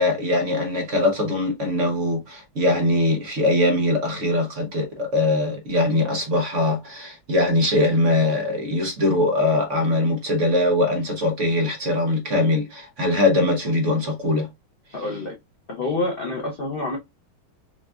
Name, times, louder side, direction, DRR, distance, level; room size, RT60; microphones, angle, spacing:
voice 1, 0.0-14.5, left 2 dB, 50° right, 0.9 m, -21 dB
voice 2, 14.9-15.3 15.7-17.0, left 2 dB, 75° left, 0.5 m, -27 dB
5.9 x 2.4 x 2.3 m
omnidirectional pair, 2.2 m